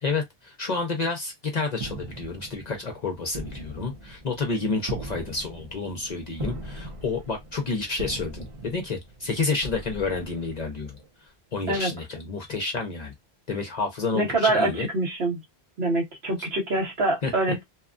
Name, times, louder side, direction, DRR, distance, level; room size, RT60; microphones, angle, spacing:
voice 1, 0.0-11.0 11.5-13.1 13.5-14.9 17.2-17.3, left 4 dB, 45° left, 0.7 m, -29 dB
sound 1, 1.8-11.1, right 2 dB, 40° right, 0.5 m, -40 dB
voice 2, 14.1-15.4 15.8-17.6, right 2 dB, 85° right, 1.3 m, -25 dB
2.8 x 2.3 x 2.4 m
omnidirectional pair, 1.0 m